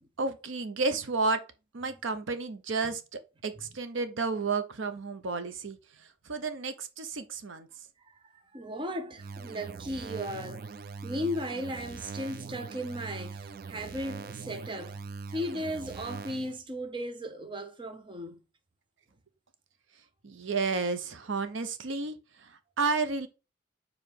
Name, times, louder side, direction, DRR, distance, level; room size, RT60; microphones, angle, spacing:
voice 1, 0.2-1.4 1.7-7.7 20.2-23.3, right 4 dB, 75° right, 0.7 m, -32 dB
voice 2, 8.0-10.7 11.0-15.0 15.3-18.3, equal, 25° right, 0.7 m, -36 dB
sound 1, 9.2-16.6, right 4 dB, 45° right, 0.3 m, -42 dB
4.7 x 4.0 x 5.3 m
head